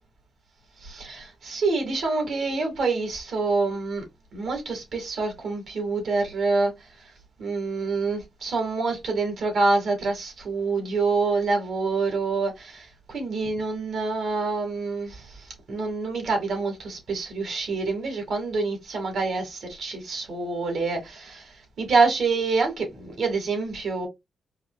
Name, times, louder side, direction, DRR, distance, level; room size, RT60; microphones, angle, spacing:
voice 1, 0.8-4.0 4.3-6.7 7.4-24.1, right 3 dB, 65° right, 1.9 m, -26 dB
4.5 x 2.4 x 2.2 m
cardioid pair, 100°, 0 cm